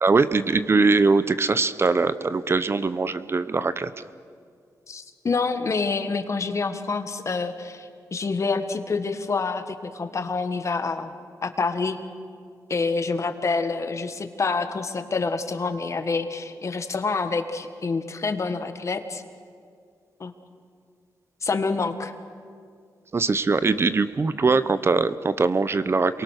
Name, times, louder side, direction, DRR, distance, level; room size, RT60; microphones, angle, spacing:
voice 1, 0.0-3.9 23.1-26.2, right 4 dB, 35° right, 14 dB, 0.7 m, -22 dB
voice 2, 4.9-11.1 11.4-12.0 12.7-19.2 20.2-20.3 21.4-22.1, left 4 dB, 45° left, 8 dB, 1.6 m, -27 dB
27.5 x 23.0 x 6.5 m, 2.2 s
wide cardioid pair, 100°, 7 cm